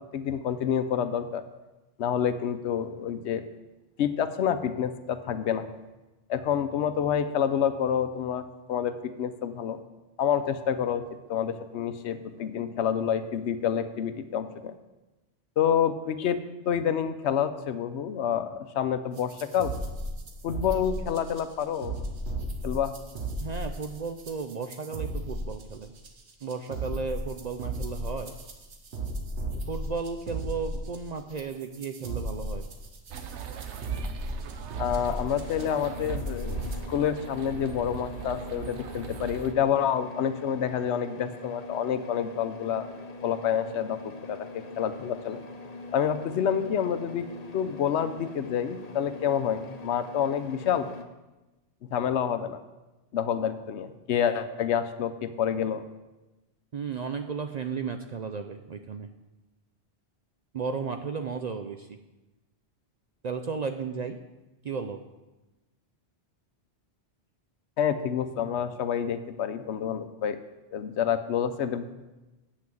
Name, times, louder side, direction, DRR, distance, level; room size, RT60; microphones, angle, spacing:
voice 1, 0.1-1.4 2.0-3.4 4.0-5.7 6.3-9.8 10.2-14.7 15.6-19.7 20.4-22.0 22.6-22.9 34.8-36.6 36.9-42.9 43.2-45.4 45.9-47.3 47.5-50.9 51.8-52.6 53.1-55.8 67.8-70.4 70.7-71.8, left 8 dB, 80° left, 11 dB, 0.9 m, -28 dB
sound 1, 19.2-36.8, right 1 dB, 70° right, 1.3 m, -35 dB
voice 2, 23.4-25.9 26.4-28.3 29.7-32.7 56.7-59.1 60.5-62.0 63.2-64.2 64.6-65.0, right 5 dB, 55° right, 6 dB, 0.5 m, -34 dB
sound 2, 33.1-39.5, right 7 dB, 90° right, 1.0 m, -41 dB
sound 3, 35.0-51.0, left 3 dB, 40° left, 0.8 m, -43 dB
8.3 x 5.9 x 7.6 m, 1.1 s
omnidirectional pair, 1.1 m